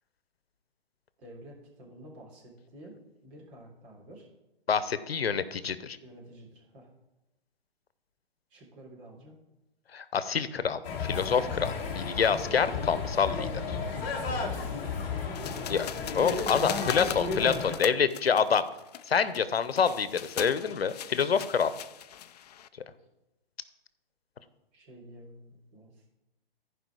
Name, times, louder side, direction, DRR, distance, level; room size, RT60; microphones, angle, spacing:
voice 1, 1.2-3.0 3.2-4.3 6.0-6.9 8.5-9.3 14.2-14.9 24.7-26.0, right 1 dB, 35° right, -2 dB, 3.4 m, -50 dB
voice 2, 4.7-6.0 9.9-13.8 15.7-15.9 16.1-18.6 19.1-21.7, left 6 dB, 90° left, 14 dB, 0.8 m, -27 dB
sound 1, 10.8-17.8, left 4 dB, 25° left, 1.6 m, -33 dB
sound 2, 15.3-22.7, left 10 dB, 45° left, 0.4 m, -40 dB
15.0 x 5.1 x 4.8 m, 0.96 s
hypercardioid pair, 140°, 30 cm